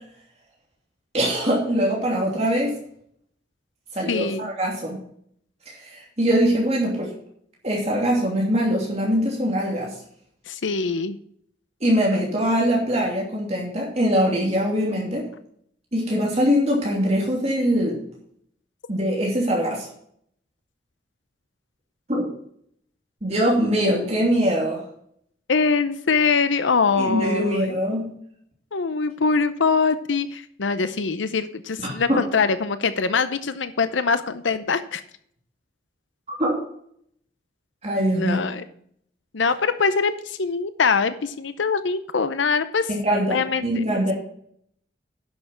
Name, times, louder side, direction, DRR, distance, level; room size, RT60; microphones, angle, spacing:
voice 1, 1.1-2.7 3.9-4.3 4.6-5.0 5.7-7.1 7.6-9.9 11.8-15.3 15.9-18.0 18.9-19.9 22.1-22.3 23.2-24.8 26.9-28.1 31.8-32.2 36.3-36.6 37.8-38.4 42.9-44.1, equal, 35° right, -3 dB, 2.9 m, -22 dB
voice 2, 4.1-4.5 10.5-11.2 25.5-27.8 28.7-35.0 38.2-38.6 39.3-42.9 43.3-43.8, left 5 dB, 90° left, 12 dB, 0.7 m, -23 dB
10.5 x 6.7 x 5.8 m, 0.66 s
head